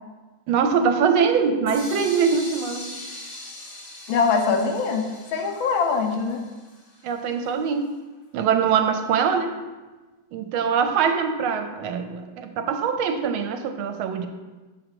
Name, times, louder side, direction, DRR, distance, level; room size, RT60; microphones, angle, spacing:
voice 1, 0.5-3.0 7.0-7.9 8.3-9.5 10.3-14.3, right 6 dB, 80° right, 7 dB, 1.4 m, -23 dB
sound 1, 1.7-7.5, left 2 dB, 45° left, 1.0 m, -41 dB
voice 2, 4.1-6.4, left 5 dB, 75° left, 4 dB, 1.4 m, -23 dB
6.5 x 6.4 x 2.9 m, 1.2 s
omnidirectional pair, 2.3 m